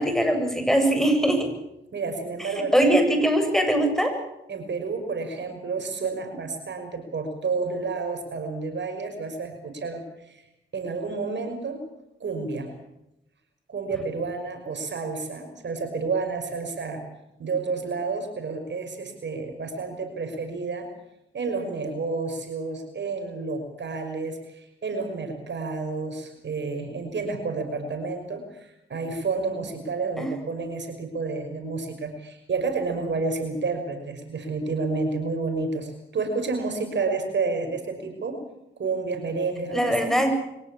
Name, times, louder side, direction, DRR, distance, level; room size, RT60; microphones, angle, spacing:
voice 1, 0.0-1.5 2.4-4.1 30.2-30.3 39.7-40.4, right 1 dB, ahead, 5 dB, 7.4 m, -22 dB
voice 2, 1.9-3.0 4.5-10.4 10.7-11.8 12.2-12.7 13.7-17.1 17.4-20.9 21.3-38.4 38.8-40.2, right 4 dB, 60° right, 5 dB, 5.8 m, -30 dB
24.0 x 17.0 x 8.6 m, 0.86 s
supercardioid pair, 55°, 21 cm